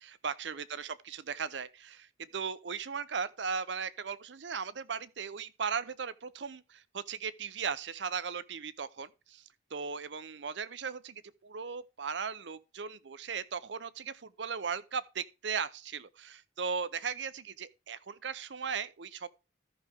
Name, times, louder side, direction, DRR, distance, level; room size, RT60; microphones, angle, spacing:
voice 1, 0.0-9.4 9.7-19.3, right 6 dB, 70° right, 0.7 m, -37 dB
13.5 x 6.1 x 3.4 m
head